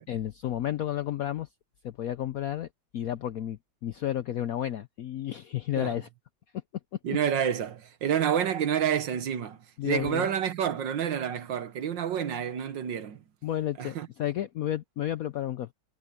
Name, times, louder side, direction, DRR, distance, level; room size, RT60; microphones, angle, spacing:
voice 1, 0.1-1.5 1.8-2.7 2.9-6.1 9.8-10.3 13.4-15.7, left 12 dB, 75° left, 0.8 m, -32 dB
voice 2, 7.0-9.6 9.8-13.2 13.8-14.1, right 8 dB, 70° right, 1.7 m, -28 dB
omnidirectional pair, 2.2 m